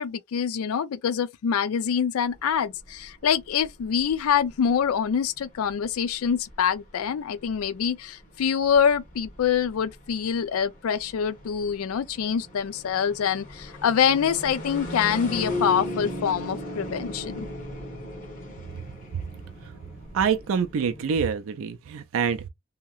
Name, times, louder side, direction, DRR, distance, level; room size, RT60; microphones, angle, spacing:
voice 1, 0.0-17.5, left 7 dB, 70° left, 0.4 m, -25 dB
sound 1, 2.3-21.3, left 1 dB, 40° left, 1.1 m, -38 dB
voice 2, 20.1-22.5, right 6 dB, 70° right, 0.4 m, -26 dB
2.8 x 2.7 x 2.3 m
head